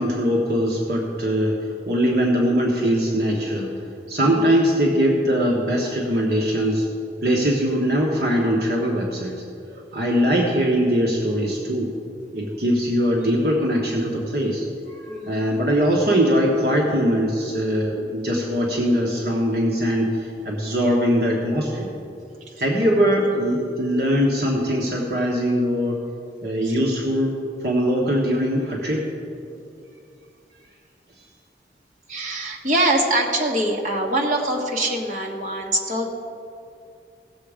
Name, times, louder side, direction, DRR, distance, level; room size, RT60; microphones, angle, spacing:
voice 1, 0.0-1.6 1.8-3.7 4.1-6.9 7.2-9.4 9.7-11.9 12.3-21.9 22.6-26.0 26.4-27.4 27.6-29.0, equal, 65° right, -2 dB, 1.2 m, -21 dB
voice 2, 4.2-4.5 13.1-13.3 15.1-15.5 26.6-26.7 32.1-36.1, right 1 dB, 45° right, -1 dB, 1.5 m, -24 dB
17.0 x 7.0 x 5.0 m, 2.6 s
head